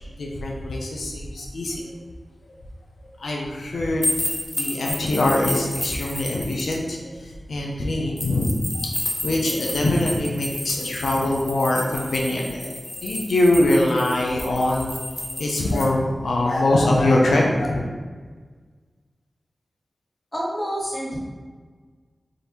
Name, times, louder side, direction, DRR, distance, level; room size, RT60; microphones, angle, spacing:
voice 1, 0.2-1.8 3.2-8.5 9.2-14.9 15.4-17.8, left 1 dB, 90° left, -2 dB, 0.5 m, -23 dB
sound 1, 4.0-6.7 8.2-15.9, left 1 dB, 35° left, 0.9 m, -31 dB
voice 2, 20.3-21.2, equal, 15° left, -5 dB, 1.4 m, -28 dB
3.7 x 2.6 x 4.2 m, 1.5 s
cardioid pair, 50°, 0 cm